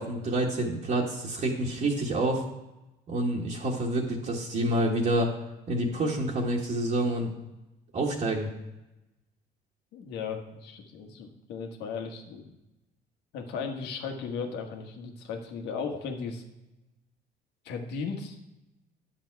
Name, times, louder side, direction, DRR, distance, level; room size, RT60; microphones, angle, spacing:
voice 1, 0.0-2.4 3.1-5.3 5.7-7.3 7.9-8.5, right 1 dB, 50° right, -3 dB, 1.7 m, -28 dB
voice 2, 9.9-12.6 13.3-16.4 17.6-18.4, left 5 dB, 85° left, 3 dB, 1.6 m, -36 dB
10.0 x 7.2 x 4.7 m, 0.97 s
cardioid pair, 110°, 17 cm